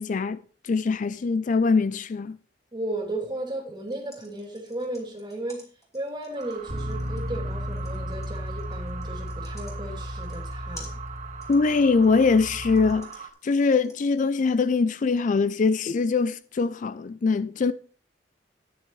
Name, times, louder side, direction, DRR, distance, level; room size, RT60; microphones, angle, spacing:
voice 1, 0.0-2.4 11.5-13.1 13.4-17.7, left 4 dB, 45° left, 0.4 m, -23 dB
voice 2, 2.7-5.6 5.9-11.0, right 1 dB, 25° right, 2.8 m, -34 dB
sound 1, 3.8-15.1, left 2 dB, 15° left, 3.1 m, -51 dB
sound 2, 6.3-13.3, right 6 dB, 45° right, 1.6 m, -41 dB
Bass guitar, 6.7-12.9, left 1 dB, 65° right, 2.2 m, -35 dB
13.0 x 10.0 x 3.2 m
head